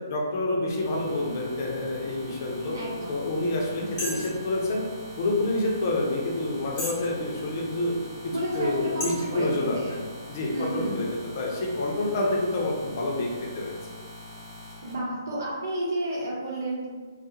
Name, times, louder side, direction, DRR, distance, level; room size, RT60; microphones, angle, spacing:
voice 1, 0.1-2.7 3.1-4.8 5.2-7.9 8.5-9.8 10.3-11.1 11.3-13.7, left 2 dB, 45° left, -2 dB, 0.6 m, -28 dB
sound 1, 0.7-14.9, left 1 dB, 15° right, 0.8 m, -44 dB
voice 2, 2.7-3.3 4.0-4.1 8.3-9.5 9.7-10.1 10.5-11.2 14.8-16.9, right 1 dB, 60° right, -4 dB, 0.8 m, -31 dB
sound 2, 4.0-4.4 5.1-5.2 5.8-5.9 6.7-7.1 7.6-7.7 8.5-8.6 9.0-9.1, left 1 dB, 20° left, 0.9 m, -33 dB
2.3 x 2.1 x 2.8 m, 1.4 s
hypercardioid pair, 145°, 2 cm